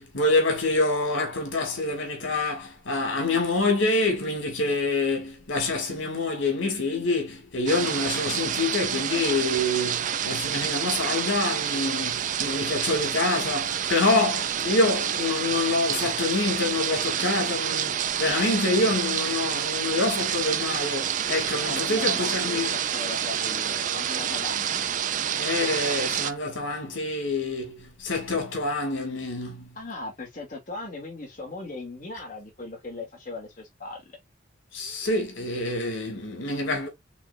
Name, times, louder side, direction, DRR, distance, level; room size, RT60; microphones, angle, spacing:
voice 1, 0.0-22.8 25.4-29.7 34.7-36.9, left 2 dB, 85° left, 2.5 m, -26 dB
sound 1, 7.7-26.3, right 9 dB, 40° right, 0.4 m, -28 dB
voice 2, 21.7-24.9 29.7-34.2, left 3 dB, 40° left, 2.7 m, -38 dB
5.9 x 3.3 x 2.6 m
head